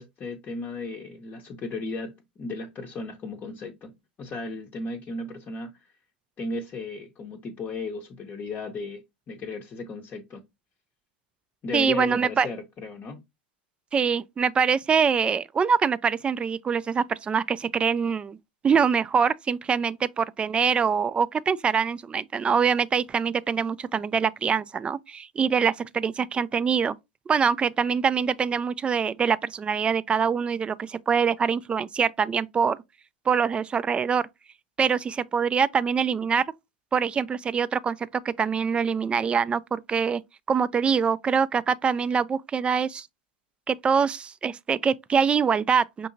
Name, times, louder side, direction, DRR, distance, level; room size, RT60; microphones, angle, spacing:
voice 1, 0.0-3.9 4.2-5.9 6.4-9.0 9.3-10.4 11.6-13.2, left 3 dB, 30° left, 0.7 m, -35 dB
voice 2, 11.7-12.5 13.9-18.4 18.6-27.0 27.3-32.8 33.3-34.2 34.8-36.4 36.9-38.0 38.2-40.2 40.5-43.1 43.7-46.1, right 6 dB, 20° right, 0.3 m, -24 dB
5.7 x 2.7 x 2.6 m
hypercardioid pair, 95°, 5 cm